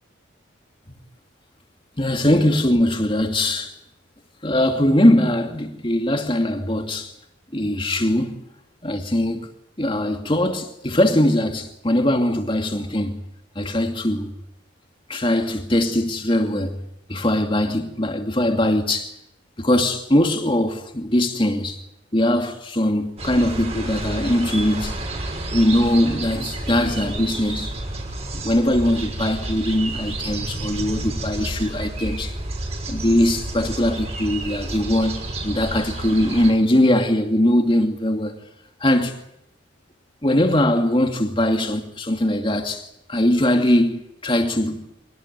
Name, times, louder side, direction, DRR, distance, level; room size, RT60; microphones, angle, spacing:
voice 1, 2.0-3.7 4.4-7.1 7.5-8.4 8.8-9.5 9.8-13.2 13.6-14.3 15.1-16.8 17.1-19.1 19.6-21.8 22.1-25.0 25.5-27.7 28.3-32.3 32.9-38.4 38.8-39.2 40.2-44.8, left 1 dB, 25° left, 2.5 m, -21 dB
sound 1, 23.2-36.5, right 2 dB, 30° right, 6.1 m, -30 dB
25.0 x 19.0 x 9.5 m
head